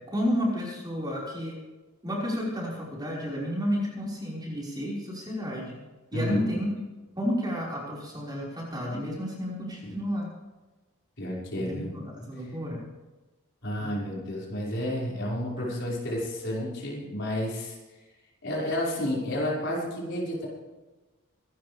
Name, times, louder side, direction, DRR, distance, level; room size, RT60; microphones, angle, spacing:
voice 1, 0.1-1.5 2.0-5.8 6.1-6.7 7.2-10.3 11.5-12.8 15.6-15.8, equal, 20° right, -4 dB, 5.3 m, -31 dB
voice 2, 6.1-6.4 9.8-10.0 11.2-11.9 13.6-17.8 18.4-20.5, left 1 dB, 55° left, -4 dB, 5.8 m, -31 dB
26.0 x 12.5 x 3.5 m, 1.2 s
head